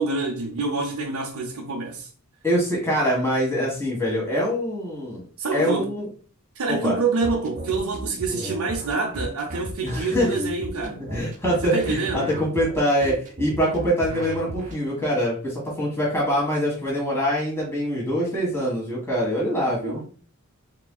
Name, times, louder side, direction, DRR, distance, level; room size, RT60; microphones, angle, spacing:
voice 1, 0.0-2.1 5.4-5.9 6.5-11.0 11.6-12.3 19.8-20.1, right 3 dB, 80° right, 0.6 m, -27 dB
voice 2, 2.4-5.2 5.5-6.1 6.7-7.0 9.8-10.3 11.0-20.0, equal, 10° left, 1.7 m, -24 dB
sound 1, 7.2-14.7, right 1 dB, 35° right, 0.8 m, -34 dB
4.8 x 3.7 x 2.3 m
head